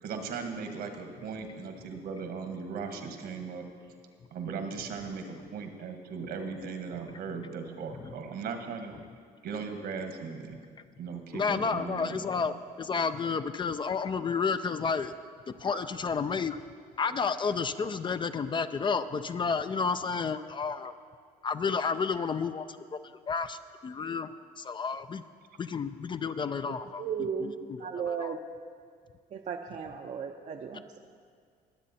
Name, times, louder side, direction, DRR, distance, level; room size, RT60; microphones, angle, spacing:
voice 1, 0.0-3.7 4.3-9.0 9.4-10.6 11.0-12.2 15.7-15.8, right 5 dB, 70° right, 6 dB, 1.4 m, -38 dB
voice 2, 11.3-15.1 15.5-16.6 17.0-21.0 21.4-24.3 24.6-25.2 25.6-27.0 27.4-28.4, left 5 dB, 30° left, 11 dB, 0.4 m, -31 dB
voice 3, 27.0-27.5 27.8-28.4 29.3-31.0, right 7 dB, 45° right, 4 dB, 0.6 m, -35 dB
20.0 x 7.6 x 4.2 m, 2.1 s
cardioid pair, 110°, 17 cm